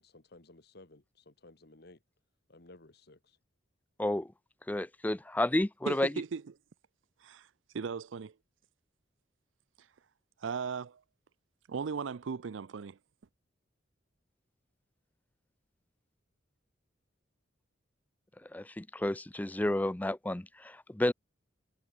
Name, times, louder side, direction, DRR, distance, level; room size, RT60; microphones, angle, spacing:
voice 1, 0.0-2.0 2.5-3.4, left 2 dB, 55° left, 1.8 m, -56 dB
voice 2, 4.7-6.1 18.5-21.1, left 1 dB, 10° left, 0.4 m, -31 dB
voice 3, 5.9-6.4 7.2-7.5 7.7-8.3 10.4-11.0 11.7-13.0, right 5 dB, 80° right, 0.5 m, -37 dB
head